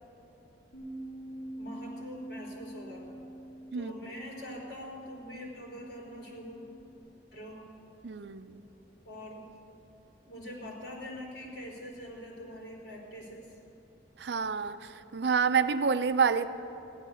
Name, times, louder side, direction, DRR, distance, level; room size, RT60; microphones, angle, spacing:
Bass guitar, 0.7-7.0, right 1 dB, 45° left, 3.5 m, -46 dB
voice 1, 1.6-3.0 3.7-6.7 7.3-7.6 9.0-9.4 10.3-13.6, left 1 dB, 70° left, -3 dB, 4.3 m, -44 dB
voice 2, 8.0-8.6 14.2-14.7 15.1-16.5, right 6 dB, 70° right, 12 dB, 0.5 m, -27 dB
14.5 x 11.5 x 7.1 m, 3.0 s
head